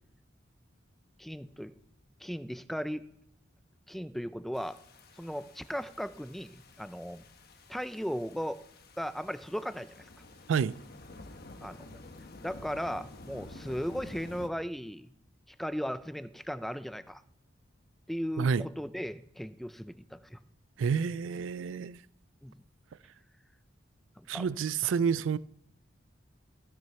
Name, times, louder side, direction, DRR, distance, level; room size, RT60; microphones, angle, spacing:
voice 1, 1.2-1.7 2.2-3.0 3.9-4.8 5.2-7.2 7.7-8.6 9.0-10.1 11.6-12.0 12.4-15.1 15.5-17.2 18.1-20.4 22.4-22.5 24.2-24.5 24.8-24.9, equal, ahead, 0.4 m, -37 dB
sound 1, 4.5-14.5, left 2 dB, 55° left, 1.0 m, -51 dB
voice 2, 20.8-22.0 24.3-25.4, right 6 dB, 70° right, 0.4 m, -29 dB
15.0 x 6.2 x 5.8 m
head